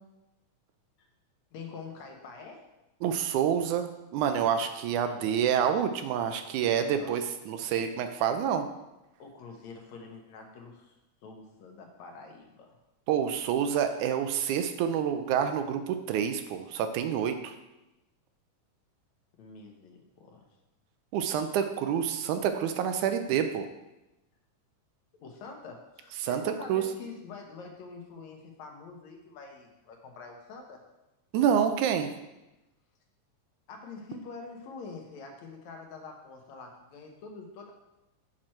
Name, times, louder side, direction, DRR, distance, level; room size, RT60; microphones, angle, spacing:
voice 1, 1.5-2.6 6.9-7.2 9.2-11.0 11.2-12.8 19.4-20.5 25.2-30.8 33.7-37.7, left 4 dB, 70° left, 2 dB, 2.1 m, -46 dB
voice 2, 3.0-8.7 13.1-17.6 21.1-23.7 26.2-26.8 31.3-32.1, right 8 dB, 80° right, 8 dB, 2.0 m, -28 dB
7.5 x 6.1 x 4.4 m, 0.96 s
omnidirectional pair, 3.6 m